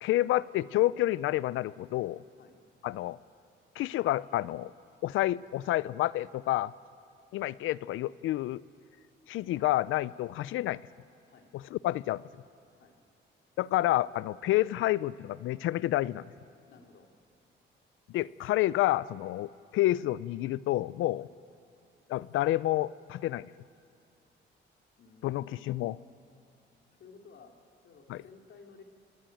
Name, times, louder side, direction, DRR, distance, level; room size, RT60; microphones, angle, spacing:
voice 1, 0.0-2.2 2.8-3.2 3.8-4.7 5.0-6.7 7.3-8.6 9.3-10.8 11.5-12.3 13.6-16.3 18.1-21.3 22.1-23.5 25.2-26.0 28.1-28.2, left 15 dB, 85° left, 20 dB, 0.5 m, -29 dB
voice 2, 16.7-17.1 21.2-21.3 25.0-26.2 27.0-27.5 27.8-28.8, left 4 dB, 65° left, 3 dB, 3.0 m, -55 dB
26.5 x 19.0 x 9.1 m, 2.5 s
cardioid pair, 90°, 20 cm